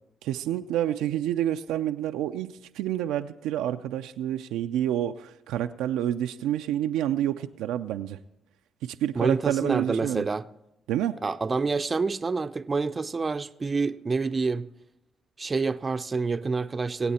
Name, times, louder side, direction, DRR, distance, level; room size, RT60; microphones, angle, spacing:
voice 1, 0.2-8.2 8.8-10.3 10.9-11.2, right 11 dB, 85° right, 0.5 m, -28 dB
voice 2, 9.2-10.5 11.2-14.7 15.4-17.1, right 4 dB, 35° right, 0.6 m, -27 dB
24.5 x 8.4 x 4.3 m
supercardioid pair, 60°, 0 cm